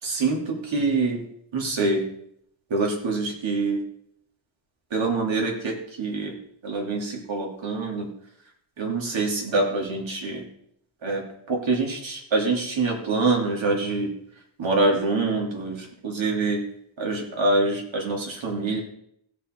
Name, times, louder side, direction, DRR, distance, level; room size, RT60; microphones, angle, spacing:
voice 1, 0.0-1.2 1.5-2.0 2.7-3.8 4.9-6.4 6.6-8.1 8.8-10.4 11.0-14.1 14.6-16.6 17.0-18.8, right 3 dB, 65° right, 0 dB, 2.9 m, -25 dB
16.5 x 5.8 x 4.4 m, 0.71 s
wide cardioid pair, 130°, 49 cm